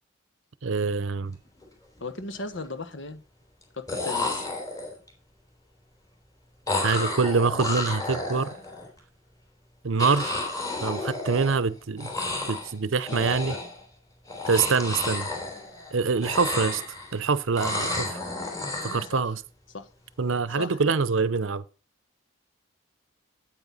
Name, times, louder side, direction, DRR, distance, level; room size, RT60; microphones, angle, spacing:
voice 1, 0.6-1.4 6.8-8.5 9.8-10.4 10.8-12.1 12.5-13.5 14.5-15.3 15.9-16.8 17.1-18.2 18.8-19.4 20.2-21.6, right 5 dB, 80° right, 0.7 m, -25 dB
sound 1, 1.4-1.6 2.0-2.6 3.6-3.7 3.9-5.1 6.7-8.9 10.0-11.7 12.0-12.7 13.0-13.8 14.2-15.9 16.2-17.2 17.6-19.1, left 2 dB, 20° left, 3.2 m, -31 dB
voice 2, 2.0-3.2 3.7-4.5 13.1-13.6 16.5-16.6 19.1-19.4 19.7-19.9 20.5-21.0, left 3 dB, 70° left, 1.4 m, -37 dB
9.0 x 8.9 x 4.1 m
head